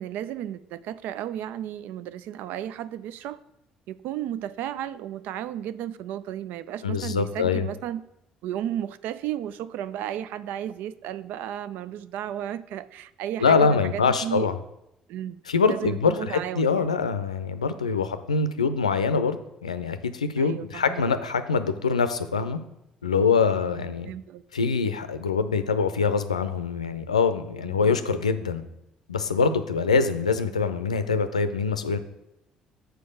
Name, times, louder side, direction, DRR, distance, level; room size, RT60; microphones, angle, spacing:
voice 1, 0.0-3.4 3.9-8.0 8.4-14.5 15.1-15.4 15.7-16.8 20.4-21.0 23.5-24.4 27.6-28.0, right 11 dB, 60° right, 16 dB, 0.4 m, -34 dB
voice 2, 6.8-7.7 13.4-14.6 15.5-19.4 19.6-22.6 23.0-24.1 24.5-28.6 29.1-32.0, left 5 dB, 85° left, 10 dB, 0.5 m, -24 dB
6.8 x 4.6 x 6.4 m, 0.84 s
figure-of-eight pair, 50°, 3 cm